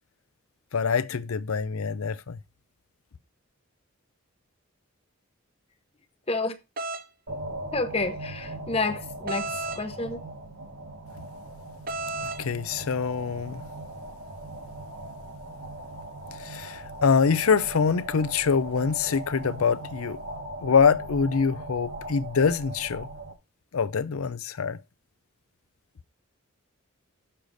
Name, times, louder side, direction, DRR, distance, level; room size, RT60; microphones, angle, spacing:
voice 1, 0.7-2.4 12.2-13.6 16.4-20.2 20.6-23.1 23.7-24.8, left 5 dB, 80° left, 0.5 m, -25 dB
sound 1, 6.8-7.0 9.3-9.8 11.9-12.4, right 3 dB, 40° right, 0.7 m, -32 dB
sound 2, 7.3-23.3, right 1 dB, 65° right, 1.9 m, -39 dB
voice 2, 7.7-9.5 9.8-10.2, left 3 dB, 25° left, 0.7 m, -29 dB
6.7 x 6.5 x 4.0 m
head